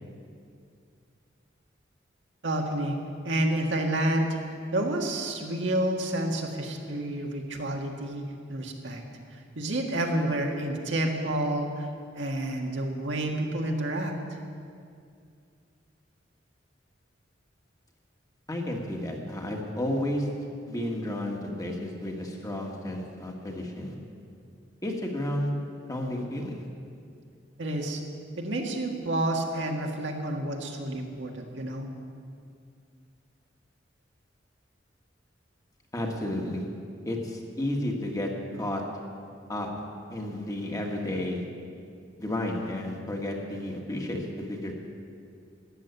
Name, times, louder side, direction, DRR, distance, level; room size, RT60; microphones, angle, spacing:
voice 1, 2.4-3.0 3.2-4.4 4.7-8.2 8.5-9.0 9.5-11.9 12.1-14.1 27.6-28.0 28.4-31.9, right 1 dB, 80° right, 1 dB, 1.7 m, -29 dB
voice 2, 18.5-20.3 20.7-23.9 24.8-25.5 25.9-26.6 35.9-36.6 37.0-38.8 39.5-39.7 40.1-41.4 42.2-44.8, left 1 dB, 20° left, 0 dB, 1.6 m, -32 dB
13.5 x 7.6 x 9.6 m, 2.4 s
head